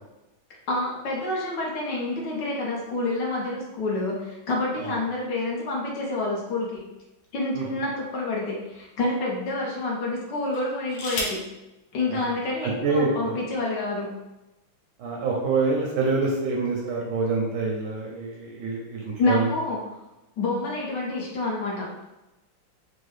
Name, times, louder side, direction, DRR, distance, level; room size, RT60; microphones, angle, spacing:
voice 1, 0.7-6.8 7.3-11.4 11.9-14.1 19.2-19.8 20.4-22.0, left 2 dB, 65° left, -3 dB, 1.3 m, -28 dB
sound 1, 6.7-8.0 8.7-8.8 10.5-11.5 12.7-12.8 13.1-13.5, left 2 dB, 85° left, 1.6 m, -35 dB
voice 2, 12.6-13.4 15.0-19.5, right 3 dB, 70° right, -2 dB, 1.1 m, -26 dB
4.6 x 2.1 x 3.2 m, 0.98 s
omnidirectional pair, 2.2 m